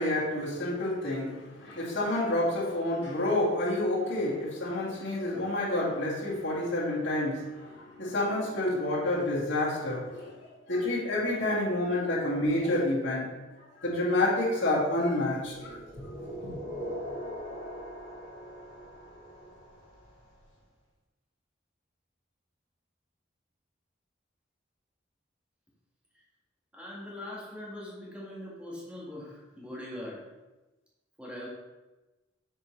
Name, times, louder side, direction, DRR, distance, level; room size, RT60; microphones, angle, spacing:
voice 1, 0.0-10.4 10.7-13.3 13.8-16.1 16.4-16.5, left 1 dB, 75° left, -8 dB, 1.9 m, -29 dB
sound 1, 15.3-20.2, equal, 20° left, 1.7 m, -41 dB
voice 2, 26.7-30.3 31.2-31.5, left 1 dB, 5° right, -5 dB, 1.4 m, -41 dB
6.7 x 4.6 x 3.1 m, 1.1 s
head